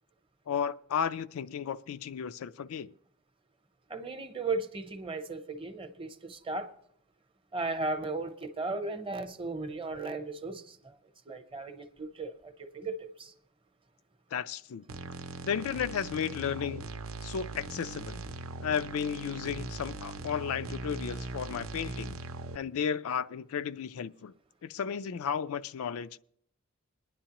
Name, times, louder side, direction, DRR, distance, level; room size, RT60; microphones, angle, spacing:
voice 1, 0.5-2.9 14.3-14.8 15.4-16.9 17.2-18.2 18.6-22.2 22.5-24.3 24.6-26.2, left 7 dB, 75° left, 0.4 m, -34 dB
voice 2, 3.9-6.7 7.5-11.0 11.3-13.3, right 3 dB, 25° right, 0.8 m, -36 dB
sound 1, 14.9-22.6, right 3 dB, 70° right, 0.6 m, -40 dB
21.5 x 10.0 x 2.9 m
head